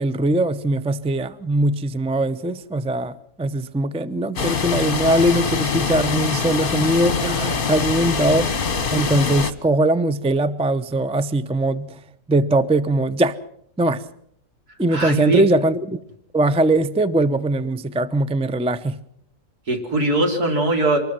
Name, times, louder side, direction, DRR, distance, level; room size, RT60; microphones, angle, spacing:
voice 1, 0.0-8.5 8.9-12.0 12.3-13.4 13.8-14.0 14.8-16.0 16.3-19.0, right 1 dB, 5° right, 0.5 m, -21 dB
sound 1, 4.4-9.5, left 5 dB, 35° left, 1.3 m, -23 dB
voice 2, 14.9-15.4 19.7-21.0, right 2 dB, 80° right, 4.3 m, -21 dB
25.0 x 20.0 x 6.0 m
omnidirectional pair, 1.6 m